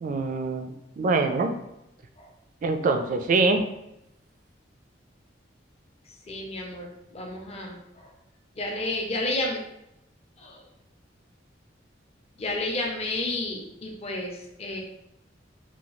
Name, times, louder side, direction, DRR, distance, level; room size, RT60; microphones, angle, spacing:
voice 1, 0.0-1.5 2.6-3.7, right 3 dB, 45° right, 6 dB, 0.3 m, -24 dB
voice 2, 6.3-8.1 8.6-9.6 10.4-10.6 12.4-14.8, left 2 dB, 35° left, 0 dB, 0.5 m, -31 dB
2.8 x 2.3 x 3.0 m, 0.86 s
head